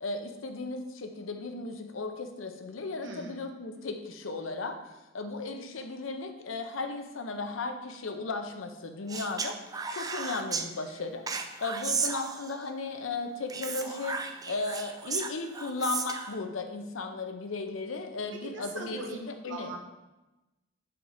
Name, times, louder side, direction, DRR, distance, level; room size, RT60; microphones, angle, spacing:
voice 1, 0.0-4.8 5.1-9.6 9.9-19.7, left 3 dB, 80° left, 6 dB, 0.7 m, -36 dB
voice 2, 3.0-3.4 18.4-19.2 19.4-19.8, right 3 dB, 70° right, 1 dB, 1.1 m, -40 dB
Speech, 9.1-10.7 11.3-12.7 13.5-16.4, right 5 dB, 20° right, 0.4 m, -34 dB
5.2 x 4.4 x 4.9 m, 1.0 s
head